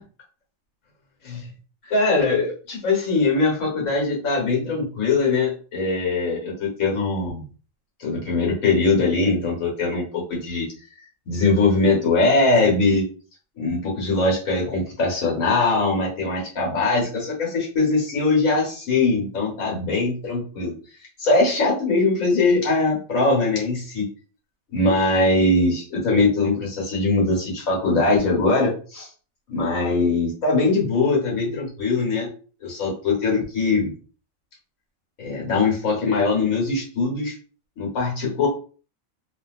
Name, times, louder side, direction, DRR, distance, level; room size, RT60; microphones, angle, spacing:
voice 1, 1.9-7.4 8.0-10.7 11.3-13.0 13.6-20.7 21.2-24.1 24.7-29.1 29.5-32.3 32.6-33.9 35.2-37.3 37.8-38.5, left 3 dB, 75° left, -3 dB, 1.6 m, -21 dB
2.7 x 2.6 x 2.4 m, 0.39 s
omnidirectional pair, 1.4 m